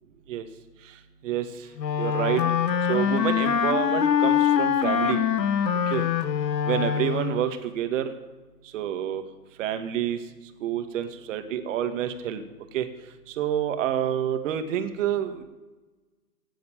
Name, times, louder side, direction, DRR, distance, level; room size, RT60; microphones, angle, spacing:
voice 1, 0.8-1.7 2.0-2.4 2.8-5.2 5.9-6.1 6.6-8.1 8.6-9.2 9.6-10.2 10.6-12.4 12.7-12.9 13.3-15.4, right 10 dB, 50° right, 8 dB, 2.1 m, -28 dB
Wind instrument woodwind instrument, 1.8-7.5, left 8 dB, 85° left, 1.2 m, -24 dB
17.5 x 7.9 x 9.0 m, 1.2 s
hypercardioid pair, 130°, 49 cm